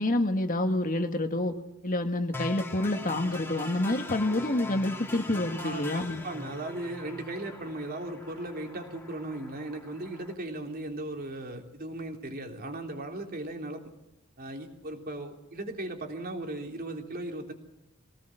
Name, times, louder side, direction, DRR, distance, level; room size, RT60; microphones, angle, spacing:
voice 1, 0.0-1.5 1.8-6.2, left 1 dB, 40° left, 6 dB, 1.7 m, -28 dB
sound 1, 2.3-10.3, left 2 dB, 10° left, 2.5 m, -42 dB
voice 2, 6.2-13.8 14.4-17.5, right 1 dB, 45° right, 3 dB, 3.3 m, -37 dB
23.5 x 18.5 x 7.8 m, 0.87 s
head